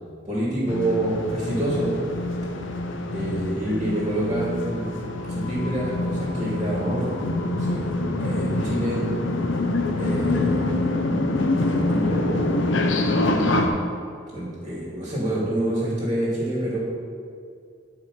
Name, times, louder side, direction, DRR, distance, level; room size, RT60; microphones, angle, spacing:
voice 1, 0.2-1.9 3.1-9.0 10.0-10.9 11.6-12.6 14.3-16.8, right 1 dB, 25° right, -6 dB, 2.4 m, -27 dB
sound 1, 0.7-13.7, left 2 dB, 85° left, 0.9 m, -25 dB
9.7 x 4.9 x 6.5 m, 2.3 s
head